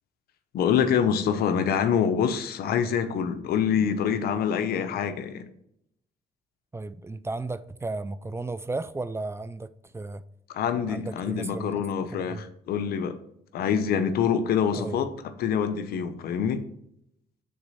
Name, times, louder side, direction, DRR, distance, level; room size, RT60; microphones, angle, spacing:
voice 1, 0.5-5.5 10.5-13.2 13.5-15.1 15.4-16.6, left 7 dB, 80° left, 0.8 m, -25 dB
voice 2, 6.7-10.2 10.9-11.8 12.1-12.5 14.8-15.0, right 3 dB, 15° right, 0.4 m, -34 dB
6.1 x 4.1 x 5.5 m
cardioid pair, 85°, 16 cm